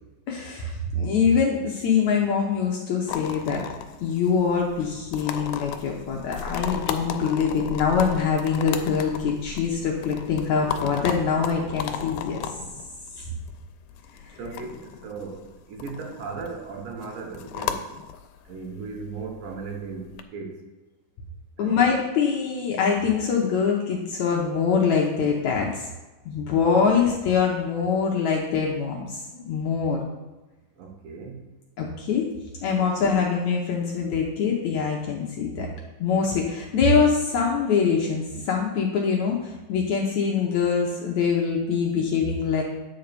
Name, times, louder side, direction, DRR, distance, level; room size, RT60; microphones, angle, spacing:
voice 1, 0.3-3.6 4.0-12.4 13.2-13.3 21.6-25.9 26.3-30.0 31.8-32.3 32.6-35.7 36.0-42.6, left 6 dB, 70° left, -1 dB, 1.9 m, -24 dB
sound 1, 3.1-20.2, left 8 dB, 85° left, 2.5 m, -35 dB
voice 2, 14.4-15.4 15.7-17.8 18.5-20.5 21.6-21.8 26.7-27.0 30.8-31.4, right 4 dB, 70° right, 2 dB, 2.7 m, -37 dB
9.6 x 4.7 x 6.7 m, 1.1 s
omnidirectional pair, 4.2 m